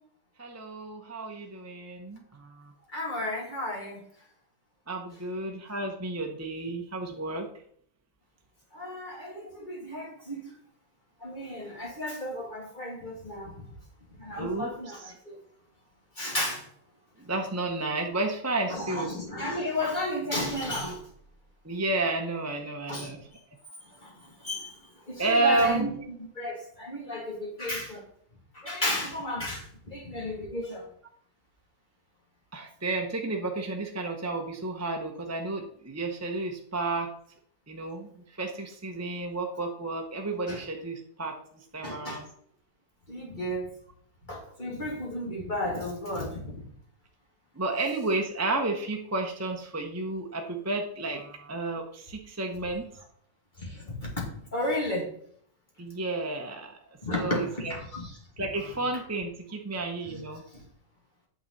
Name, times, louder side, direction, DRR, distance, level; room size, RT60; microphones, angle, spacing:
voice 1, 0.4-2.7 4.9-7.5 14.4-15.1 17.2-19.1 21.6-23.2 25.2-25.9 32.5-37.1 37.7-38.1 38.4-41.4 41.7-42.3 47.5-52.9 55.8-56.7 57.1-57.7 58.4-60.4, right 2 dB, 15° right, 2 dB, 0.7 m, -31 dB
voice 2, 2.9-4.0 8.7-10.5 11.2-13.5 14.2-15.4 16.2-16.6 18.7-21.0 22.9-23.1 24.0-24.8 25.1-25.9 26.4-28.0 28.5-30.9 40.5-40.6 41.8-42.2 43.1-43.7 44.3-46.6 53.6-55.1 57.0-58.1 60.1-60.2, left 1 dB, 25° left, -3 dB, 2.9 m, -33 dB
9.1 x 7.1 x 4.2 m, 0.65 s
omnidirectional pair, 1.8 m